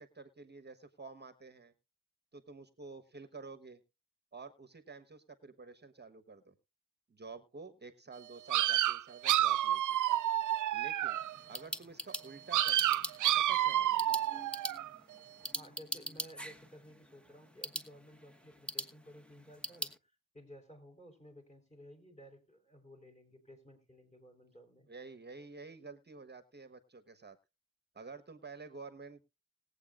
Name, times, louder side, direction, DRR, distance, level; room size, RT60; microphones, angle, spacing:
voice 1, 0.0-1.7 2.3-3.8 4.3-6.5 7.1-10.0 10.7-11.2 11.5-13.0 13.3-14.0 24.9-27.4 27.9-29.2, right 4 dB, 30° right, 12 dB, 1.2 m, -50 dB
sound 1, 8.5-11.4 12.5-15.0, right 13 dB, 60° right, 0.5 m, -29 dB
sound 2, 11.2-20.0, equal, 5° left, 1.2 m, -43 dB
voice 2, 15.5-24.9, equal, 20° left, 5 dB, 4.3 m, -56 dB
20.5 x 8.1 x 2.5 m, 0.26 s
cardioid pair, 60°, 34 cm